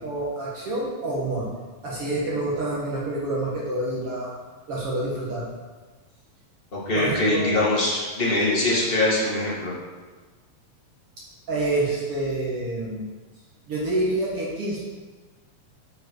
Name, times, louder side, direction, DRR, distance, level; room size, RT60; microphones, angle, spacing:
voice 1, 0.0-1.5 1.8-4.3 4.7-5.5 6.9-7.5 11.5-13.1 13.7-14.8, right 2 dB, 50° right, -6 dB, 2.0 m, -27 dB
voice 2, 6.7-9.7, left 2 dB, 25° left, -7 dB, 1.5 m, -23 dB
7.6 x 7.3 x 4.7 m, 1.3 s
omnidirectional pair, 4.1 m